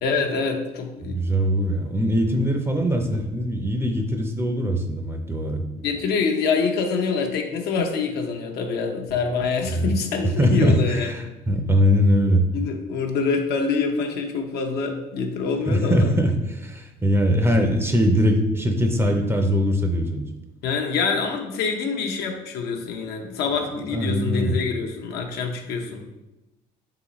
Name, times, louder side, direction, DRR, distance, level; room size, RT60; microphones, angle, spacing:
voice 1, 0.0-1.3 5.8-11.3 12.5-16.1 20.6-26.0, left 5 dB, 75° left, 3 dB, 0.7 m, -25 dB
voice 2, 1.0-5.7 9.7-9.9 10.4-12.5 15.7-20.3 23.9-24.6, equal, 15° right, 3 dB, 0.5 m, -21 dB
4.0 x 3.9 x 3.0 m, 0.98 s
cardioid pair, 110°, 17 cm